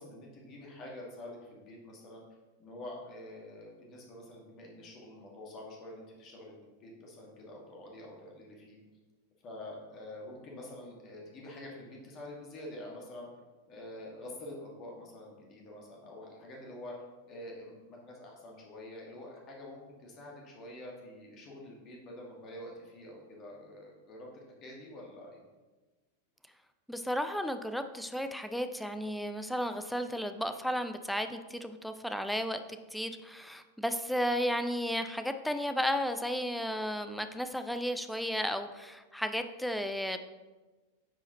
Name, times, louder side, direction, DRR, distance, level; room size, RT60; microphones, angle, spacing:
voice 1, 0.0-2.2 2.6-8.8 9.4-13.3 13.7-16.9 17.3-25.4, left 1 dB, 35° left, -2 dB, 1.7 m, -47 dB
voice 2, 26.9-40.2, equal, ahead, 8 dB, 0.4 m, -33 dB
9.3 x 4.8 x 2.9 m, 1.2 s
figure-of-eight pair, 90°, 0 cm